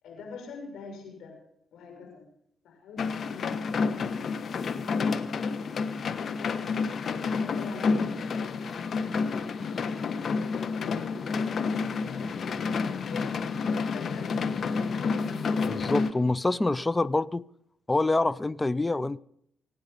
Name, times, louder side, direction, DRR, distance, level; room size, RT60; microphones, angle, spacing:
voice 1, 0.0-1.4 1.7-2.2 2.6-3.9 6.3-6.9 7.4-9.6 10.2-13.5 13.9-14.6, left 4 dB, 75° left, 6.8 m, -45 dB
sound 1, 3.0-16.1, left 5 dB, 55° left, 1.2 m, -29 dB
voice 2, 15.7-17.5 17.9-19.2, left 2 dB, 20° left, 0.6 m, -26 dB
24.0 x 10.0 x 5.5 m
supercardioid pair, 65°, 0 cm